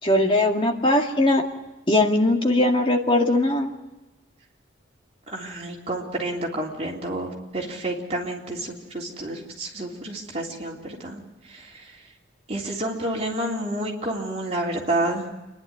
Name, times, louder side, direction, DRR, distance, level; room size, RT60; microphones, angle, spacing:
voice 1, 0.0-1.4 1.9-3.7, left 1 dB, 25° left, 1 dB, 2.1 m, -20 dB
voice 2, 5.3-11.2 11.5-11.9 12.5-15.3, right 1 dB, 30° right, -2 dB, 3.5 m, -29 dB
28.0 x 11.0 x 9.6 m, 1.1 s
head